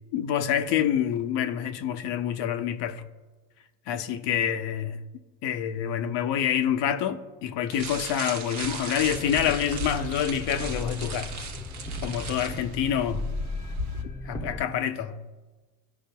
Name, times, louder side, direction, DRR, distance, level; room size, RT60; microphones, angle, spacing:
voice 1, 0.1-3.0 3.9-5.0 5.4-11.5 12.0-13.3 14.2-15.2, left 9 dB, 60° left, 0.7 m, -27 dB
sound 1, 7.7-12.7, right 6 dB, 35° right, 0.8 m, -38 dB
sound 2, 9.0-14.6, left 2 dB, 5° left, 0.8 m, -36 dB
sound 3, 9.4-14.0, left 2 dB, 80° right, 1.1 m, -40 dB
13.5 x 4.9 x 2.2 m
hypercardioid pair, 70°, 50 cm